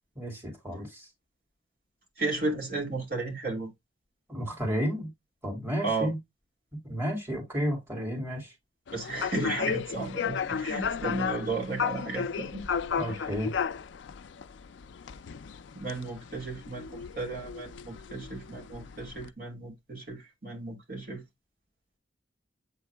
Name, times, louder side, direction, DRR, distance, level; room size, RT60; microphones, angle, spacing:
voice 1, 0.2-1.1 4.3-5.1 5.4-6.2 6.8-8.5 13.0-13.5, equal, 10° right, 2.5 m, -32 dB
voice 2, 2.2-3.7 5.8-6.1 8.9-12.6 13.1-13.2 15.7-21.2, right 3 dB, 50° right, 2.6 m, -34 dB
sound 1, 8.9-19.3, left 6 dB, 70° left, 0.4 m, -34 dB
8.1 x 3.7 x 3.3 m
head